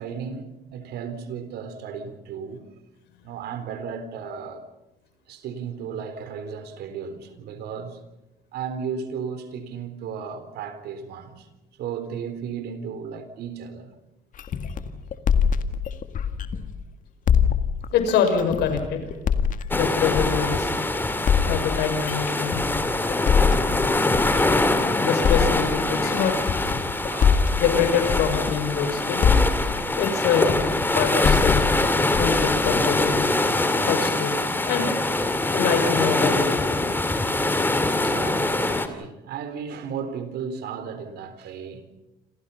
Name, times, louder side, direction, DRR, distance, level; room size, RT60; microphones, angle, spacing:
voice 1, 0.0-2.6 3.2-4.6 5.3-8.0 8.5-11.5 11.8-13.9 27.1-27.5 38.0-41.9, right 6 dB, 75° right, 3.9 m, -34 dB
sound 1, 14.4-16.8 17.3-20.8 21.3-24.8 25.2-28.9 29.2-33.3, left 7 dB, 50° left, 1.9 m, -24 dB
voice 2, 17.9-19.1 19.7-20.7 21.4-22.6 25.0-26.3 27.6-29.4 30.0-30.6 30.9-31.7 32.2-33.4 33.6-34.9 35.5-36.6, left 6 dB, 85° left, 6.3 m, -25 dB
sound 2, 19.7-38.9, left 2 dB, 10° left, 2.6 m, -24 dB
28.0 x 27.5 x 5.7 m
cardioid pair, 110°, 17 cm